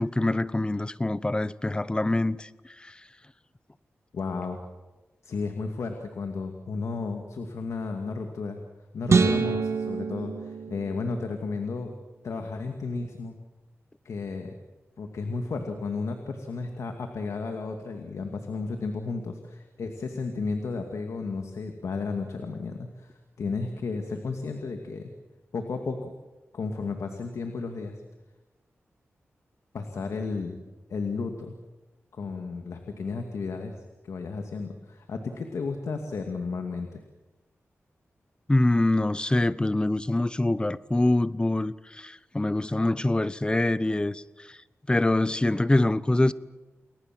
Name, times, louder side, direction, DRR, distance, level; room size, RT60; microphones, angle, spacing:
voice 1, 0.0-2.5 2.8-3.0 38.5-44.6 44.9-46.3, left 2 dB, 20° left, 1.0 m, -25 dB
voice 2, 4.1-4.6 5.2-8.6 8.9-11.9 12.2-13.4 14.0-14.5 15.0-25.1 25.5-26.1 26.5-28.0 29.7-30.6 30.9-31.6 32.1-33.7 34.0-37.0, left 4 dB, 80° left, 2.3 m, -33 dB
sound 1, 9.1-11.4, right 5 dB, 70° right, 2.5 m, -25 dB
30.0 x 20.0 x 7.7 m
cardioid pair, 70°, 5 cm